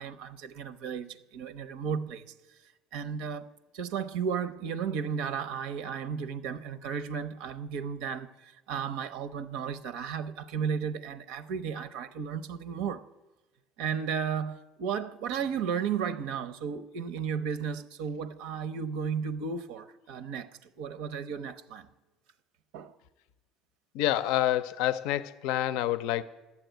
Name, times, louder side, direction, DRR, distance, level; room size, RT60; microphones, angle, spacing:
voice 1, 0.0-2.3 2.9-3.5 3.7-13.0 13.8-21.9 22.7-22.9, right 7 dB, 85° right, 0.7 m, -34 dB
voice 2, 23.9-26.2, left 13 dB, 80° left, 0.5 m, -28 dB
12.0 x 7.2 x 9.1 m
cardioid pair, 115°, 0 cm